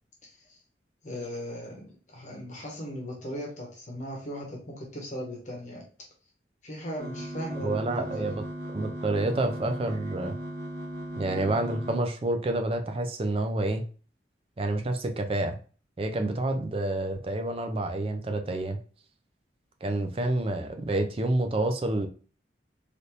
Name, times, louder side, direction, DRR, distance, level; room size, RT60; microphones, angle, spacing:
voice 1, 0.2-0.6 1.0-5.8 6.6-8.4, equal, 40° left, -1 dB, 0.8 m, -38 dB
sound 1, 7.0-12.0, equal, 50° right, 1.2 m, -37 dB
voice 2, 7.6-8.4 8.7-10.3 11.2-13.8 14.6-15.6 16.0-18.8 19.8-22.1, right 2 dB, 30° right, 5 dB, 0.4 m, -28 dB
3.4 x 2.5 x 2.8 m, 0.39 s
head